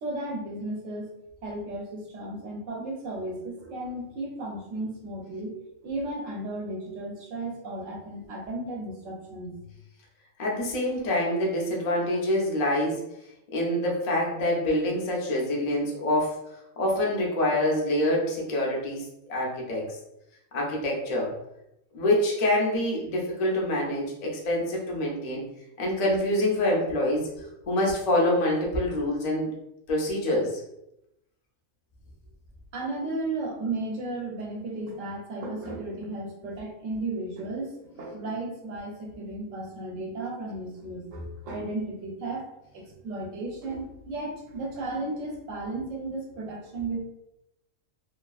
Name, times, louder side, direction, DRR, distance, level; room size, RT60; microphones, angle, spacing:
voice 1, 0.0-1.0 1.4-5.5 5.8-9.6 32.7-42.5 42.7-47.0, right 2 dB, 70° right, 0 dB, 1.0 m, -34 dB
voice 2, 10.4-13.0 13.5-16.4 16.8-20.0 20.5-21.4 21.9-25.4 25.8-29.5 29.9-30.6, left 1 dB, 45° left, -3 dB, 0.5 m, -26 dB
2.8 x 2.4 x 2.3 m, 0.86 s
omnidirectional pair, 1.4 m